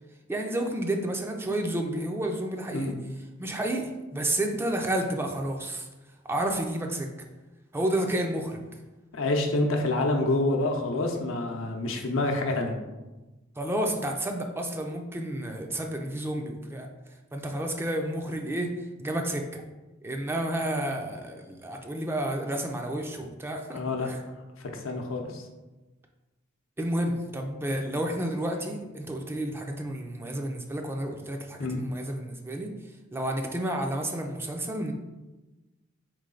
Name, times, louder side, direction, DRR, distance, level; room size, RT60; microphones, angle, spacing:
voice 1, 0.3-2.9 3.4-5.9 6.3-7.1 7.7-8.6 13.6-16.9 17.3-18.7 19.0-19.6 20.0-23.8 24.0-24.2 26.8-32.7 33.1-34.9, right 1 dB, 10° right, 3 dB, 0.4 m, -30 dB
voice 2, 9.1-12.7 23.7-24.1 24.6-25.4 31.6-31.8, left 2 dB, 80° left, 3 dB, 0.7 m, -27 dB
4.0 x 3.2 x 3.8 m, 1.1 s
head